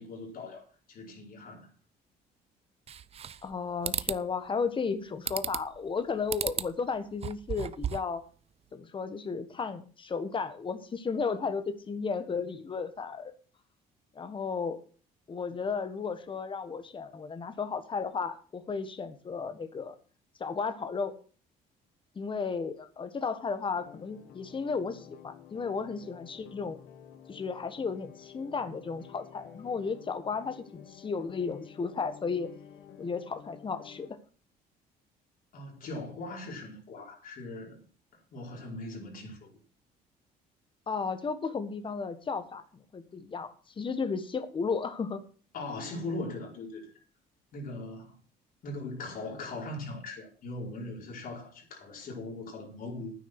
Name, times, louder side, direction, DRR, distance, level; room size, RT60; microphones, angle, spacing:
voice 1, 0.0-1.7 35.5-37.8 38.1-39.5 45.5-46.9 47.5-48.2 48.6-53.1, left 2 dB, 55° left, 5.1 m, -40 dB
sound 1, 2.9-3.5 3.8-4.2 5.3-5.8 6.3-6.7 7.1-8.2, right 8 dB, 35° right, 0.6 m, -34 dB
voice 2, 3.4-8.3 8.7-13.3 14.1-14.8 15.3-19.9 20.4-21.1 22.1-26.8 27.3-32.5 33.0-34.2 40.9-43.5 43.8-45.2, left 5 dB, 30° left, 1.5 m, -34 dB
sound 2, 23.7-34.1, left 9 dB, 75° left, 1.6 m, -51 dB
10.0 x 9.5 x 6.1 m
cardioid pair, 110°, 17 cm